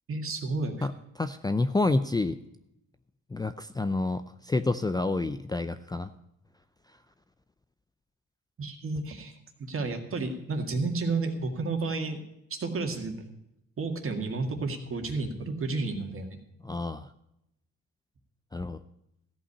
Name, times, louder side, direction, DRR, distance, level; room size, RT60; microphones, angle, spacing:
voice 1, 0.1-0.9 8.6-9.3 9.6-12.2 12.6-13.2 13.8-16.4, right 3 dB, 45° right, 4 dB, 2.1 m, -31 dB
voice 2, 0.8-2.4 3.3-6.1 16.6-17.1 18.5-18.8, left 2 dB, 15° left, 11 dB, 0.4 m, -29 dB
14.5 x 5.5 x 8.5 m, 0.81 s
cardioid pair, 90°, 30 cm